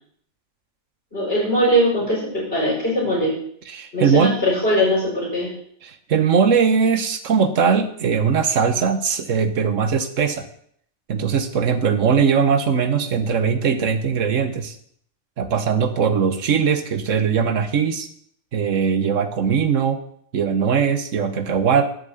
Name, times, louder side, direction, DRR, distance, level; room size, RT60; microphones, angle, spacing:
voice 1, 1.1-3.4 3.9-5.5, equal, 50° left, -6 dB, 7.2 m, -20 dB
voice 2, 3.7-4.4 5.8-10.4 11.1-14.8 15.4-18.1 18.5-20.0 20.3-21.9, right 6 dB, 85° right, 9 dB, 1.5 m, -20 dB
12.0 x 7.3 x 7.9 m, 0.64 s
omnidirectional pair, 1.3 m